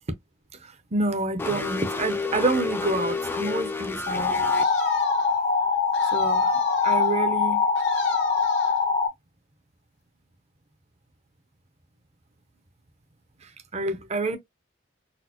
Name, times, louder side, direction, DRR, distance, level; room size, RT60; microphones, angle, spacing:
voice 1, 0.6-4.4 6.1-6.5 6.8-7.6 13.4-14.4, right 2 dB, 35° right, 0.6 m, -28 dB
sound 1, 1.4-4.6, left 4 dB, 10° left, 0.3 m, -30 dB
sound 2, 4.1-9.1, left 5 dB, 40° left, 0.7 m, -23 dB
sound 3, 4.5-5.4 5.9-7.2 7.8-8.8, left 4 dB, 85° left, 1.3 m, -39 dB
4.1 x 2.0 x 2.8 m
head